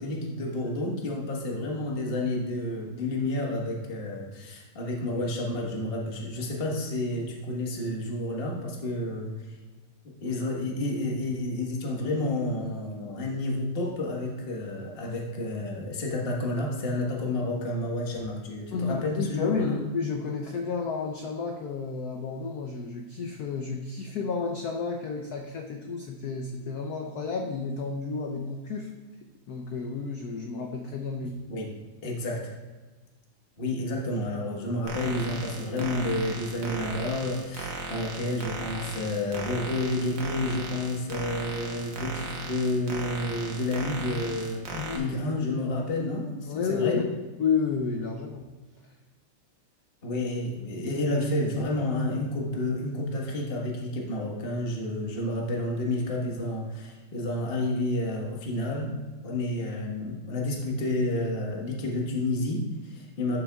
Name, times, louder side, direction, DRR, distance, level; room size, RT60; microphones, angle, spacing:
voice 1, 0.0-9.6 10.2-19.8 31.5-31.7 32.0-32.5 33.6-47.0 50.0-58.9 59.2-63.4, left 1 dB, 30° left, -2 dB, 1.3 m, -30 dB
voice 2, 18.7-28.9 29.5-31.4 44.7-45.2 46.5-47.0 47.4-48.5, left 5 dB, 85° left, 3 dB, 0.8 m, -31 dB
sound 1, 34.9-45.0, right 3 dB, 55° right, 1.4 m, -37 dB
11.5 x 7.0 x 2.3 m, 1.3 s
omnidirectional pair, 2.4 m